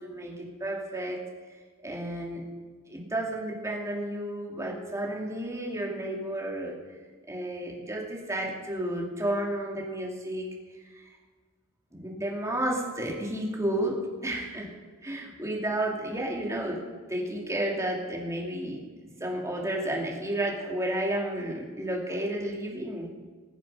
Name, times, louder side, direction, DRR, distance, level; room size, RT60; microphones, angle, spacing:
voice 1, 0.0-1.2 1.8-2.4 2.9-6.8 7.3-10.5 10.9-11.0 11.9-14.0 14.2-14.7 15.0-16.8 17.1-18.8 19.2-23.1, right 1 dB, 15° right, -1 dB, 2.4 m, -32 dB
20.0 x 7.7 x 5.4 m, 1.5 s
head